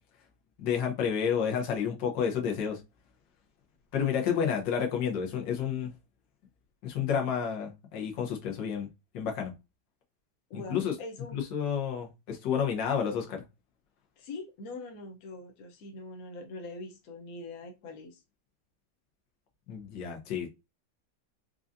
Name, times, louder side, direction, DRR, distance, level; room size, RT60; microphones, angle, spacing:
voice 1, 0.6-2.8 3.9-5.9 6.8-8.9 9.1-9.5 10.5-10.9 11.3-13.4 19.7-20.6, left 7 dB, 90° left, 1.6 m, -30 dB
voice 2, 10.5-11.4 14.2-18.2, left 2 dB, 60° left, 1.2 m, -43 dB
4.7 x 2.5 x 2.6 m
omnidirectional pair, 1.9 m